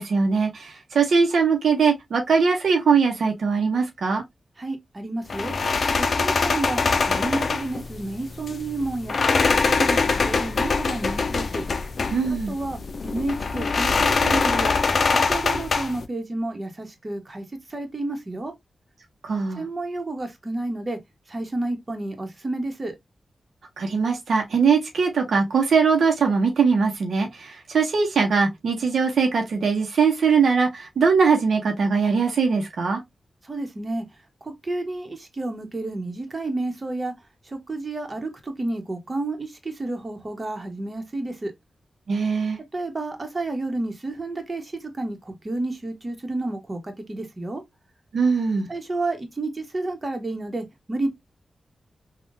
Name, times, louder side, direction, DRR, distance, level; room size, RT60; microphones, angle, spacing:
voice 1, 0.0-4.2 12.1-12.5 19.2-19.6 23.8-33.0 42.1-42.6 48.1-48.7, right 5 dB, 75° right, 0.8 m, -21 dB
voice 2, 4.6-5.5 5.9-6.8 7.1-9.2 9.7-11.6 12.5-14.8 15.1-17.4 17.7-18.5 19.6-21.0 21.3-23.0 33.4-34.0 34.4-37.1 37.4-41.5 42.7-47.6 48.7-51.1, right 2 dB, 35° right, 1.1 m, -30 dB
sound 1, 5.3-16.0, left 4 dB, 60° left, 0.4 m, -23 dB
3.6 x 2.3 x 2.5 m
cardioid pair, 50°, 0 cm